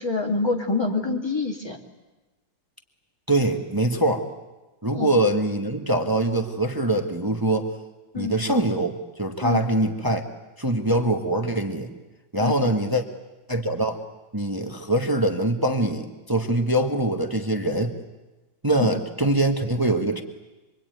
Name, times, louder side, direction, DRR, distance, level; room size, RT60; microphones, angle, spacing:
voice 1, 0.0-1.8 4.9-5.1 8.1-8.3 9.4-9.6 12.4-12.6 18.8-18.9, left 3 dB, 10° left, 2 dB, 2.5 m, -26 dB
voice 2, 3.3-4.3 4.8-7.7 8.1-10.2 10.6-11.9 12.3-13.0 13.5-14.0 14.3-17.9 18.6-20.2, right 1 dB, 10° right, 5 dB, 1.4 m, -23 dB
26.5 x 23.0 x 9.3 m, 1.1 s
omnidirectional pair, 2.2 m